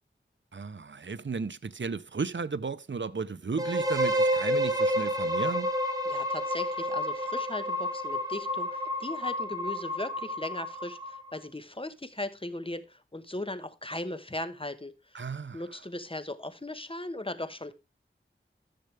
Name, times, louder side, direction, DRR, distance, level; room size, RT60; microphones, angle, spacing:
voice 1, 0.5-5.7 15.1-15.6, right 5 dB, 65° right, 0.7 m, -34 dB
sound 1, 3.6-11.4, equal, 20° right, 2.1 m, -30 dB
voice 2, 6.1-15.2 15.5-17.7, left 1 dB, 25° left, 1.1 m, -38 dB
14.0 x 6.7 x 3.3 m
wide cardioid pair, 40°, 21 cm